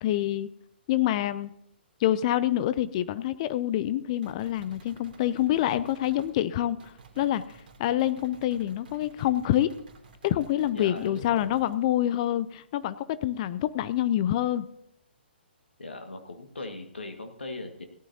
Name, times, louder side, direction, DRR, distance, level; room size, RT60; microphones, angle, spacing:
voice 1, 0.0-0.5 0.9-1.5 2.0-7.4 7.8-9.7 10.2-14.7, left 12 dB, 35° left, 15 dB, 0.5 m, -26 dB
sound 1, 4.2-6.4 6.8-11.8, right 4 dB, 50° right, 2.9 m, -53 dB
voice 2, 10.7-11.5 15.8-17.8, left 2 dB, 80° left, 5 dB, 1.8 m, -39 dB
17.5 x 12.0 x 2.8 m, 0.76 s
figure-of-eight pair, 130°, 6 cm